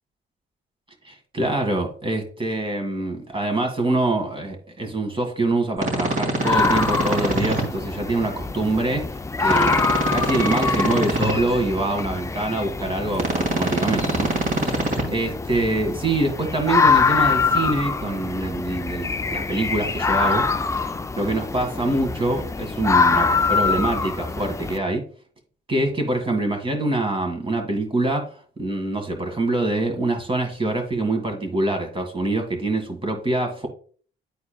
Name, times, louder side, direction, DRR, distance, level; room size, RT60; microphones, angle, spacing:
voice 1, 1.1-9.8 10.1-14.3 14.7-14.8 15.1-20.5 21.2-25.0 25.7-33.7, right 2 dB, 25° right, 4 dB, 1.8 m, -25 dB
sound 1, 5.8-7.6 9.5-11.3 13.1-15.0, right 2 dB, 45° right, 2.2 m, -24 dB
sound 2, 6.4-24.8, left 4 dB, 15° left, 0.4 m, -24 dB
10.0 x 4.3 x 2.2 m, 0.44 s
cardioid pair, 90°, 20 cm